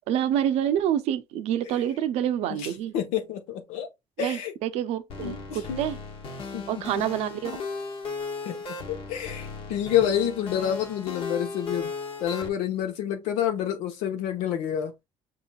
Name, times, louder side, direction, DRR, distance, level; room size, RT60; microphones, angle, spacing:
voice 1, 0.1-2.9 4.2-6.0 6.7-7.5, right 10 dB, 75° right, 0.6 m, -27 dB
voice 2, 2.9-3.9 4.2-4.5 5.2-5.8 6.5-6.6 8.4-11.9 12.2-14.9, left 10 dB, 85° left, 1.1 m, -28 dB
sound 1, 5.1-12.5, left 4 dB, 60° left, 1.2 m, -36 dB
6.0 x 2.9 x 2.3 m
cardioid pair, 105°, 11 cm